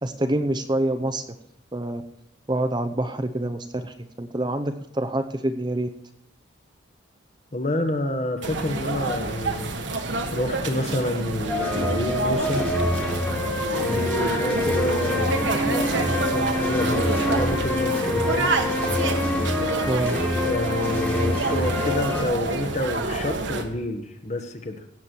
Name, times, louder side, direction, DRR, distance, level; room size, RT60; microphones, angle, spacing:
voice 1, 0.0-1.2 1.7-2.0 2.5-5.9 19.9-20.2, right 1 dB, 20° right, 8 dB, 0.7 m, -26 dB
voice 2, 7.5-9.8 10.3-12.7 13.8-19.2 20.5-24.8, left 1 dB, 35° left, 7 dB, 1.2 m, -29 dB
sound 1, 8.4-23.6, right 2 dB, 65° right, 1.4 m, -28 dB
sound 2, 11.5-22.2, left 1 dB, 10° left, 1.7 m, -26 dB
17.0 x 7.0 x 4.5 m, 0.81 s
head